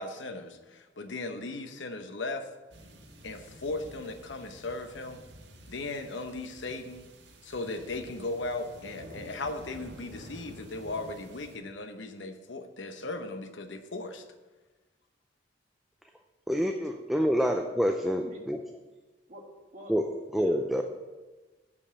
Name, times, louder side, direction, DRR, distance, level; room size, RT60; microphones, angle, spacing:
voice 1, 0.0-2.5 3.2-5.2 5.7-7.0 7.4-14.2, left 2 dB, 80° left, 7 dB, 0.9 m, -37 dB
sound 1, 2.7-11.6, equal, 70° right, 1.6 m, -50 dB
voice 2, 16.5-18.6 19.9-20.8, equal, ahead, 3 dB, 0.4 m, -27 dB
voice 3, 18.0-18.4 19.3-19.4 19.7-19.9 20.4-20.6, equal, 40° right, -1 dB, 1.8 m, -45 dB
8.4 x 5.3 x 7.1 m, 1.2 s
head